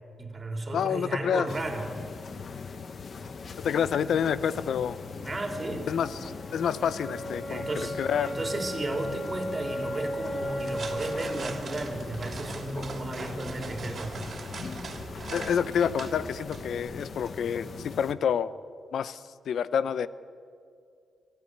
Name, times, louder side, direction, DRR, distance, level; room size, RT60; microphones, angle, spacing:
voice 1, 0.2-1.9 5.2-6.2 7.5-14.2, right 2 dB, 30° right, 3 dB, 4.0 m, -34 dB
voice 2, 0.7-1.5 3.6-5.0 5.9-8.3 15.3-18.5 18.9-20.1, left 8 dB, 75° left, 16 dB, 0.7 m, -28 dB
sound 1, 1.5-18.1, left 5 dB, 55° left, 1.2 m, -41 dB
sound 2, 5.0-13.0, equal, 10° left, 3.9 m, -37 dB
sound 3, 10.4-17.3, right 4 dB, 55° right, 2.9 m, -42 dB
21.5 x 14.5 x 9.4 m, 2.3 s
cardioid pair, 70°, 0 cm